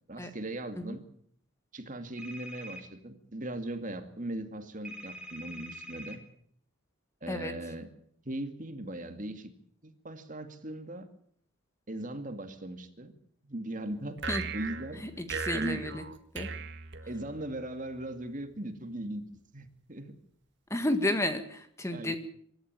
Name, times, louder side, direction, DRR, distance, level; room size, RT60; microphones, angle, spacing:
voice 1, 0.1-1.0 1.7-6.2 7.2-7.9 8.2-9.5 9.8-11.1 11.9-13.1 13.4-14.2 14.5-15.0 15.5-15.8 17.1-19.2 19.5-20.1 21.9-22.2, right 1 dB, 40° right, 8 dB, 2.2 m, -38 dB
sound 1, 2.2-2.8 4.8-6.2, right 1 dB, 5° right, 4.3 m, -44 dB
sound 2, 14.2-17.6, right 5 dB, 60° right, 1.8 m, -38 dB
voice 2, 15.2-16.0 16.3-16.5 20.7-22.2, left 1 dB, 15° left, 8 dB, 1.7 m, -31 dB
25.0 x 13.0 x 9.1 m, 0.64 s
head